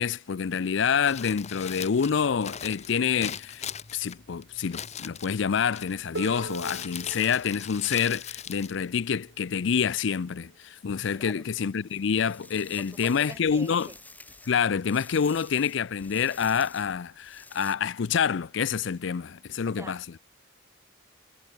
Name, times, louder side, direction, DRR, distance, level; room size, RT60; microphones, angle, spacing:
voice 1, 0.0-3.7 3.9-13.9 14.5-20.1, left 6 dB, 65° left, 0.5 m, -27 dB
Crumpling crinkling, 0.9-9.5, left 8 dB, 35° left, 0.9 m, -40 dB
sound 1, 3.0-3.1 3.3-3.5 4.4-8.3 9.8-9.9 10.7-10.8 11.7-17.7, left 2 dB, 10° left, 1.2 m, -52 dB
Harp, 6.2-11.9 13.0-13.1, right 2 dB, 60° right, 2.4 m, -45 dB
voice 2, 12.8-14.0 19.7-20.2, right 2 dB, 15° right, 1.1 m, -45 dB
head